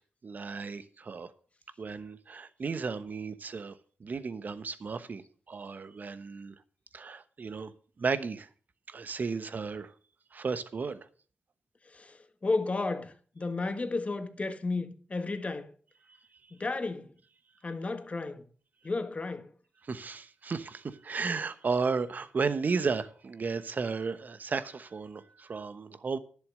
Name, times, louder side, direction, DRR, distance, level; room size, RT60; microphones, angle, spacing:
voice 1, 0.2-1.3 1.8-3.7 4.0-5.2 5.5-6.5 6.9-7.7 8.0-8.5 8.9-9.9 10.3-11.0 19.9-26.2, right 4 dB, 55° right, 1.0 m, -34 dB
voice 2, 11.9-15.7 16.6-17.1 17.6-18.4 18.8-19.5, left 3 dB, 40° left, 1.5 m, -33 dB
11.0 x 7.0 x 6.4 m
cardioid pair, 50°, 3 cm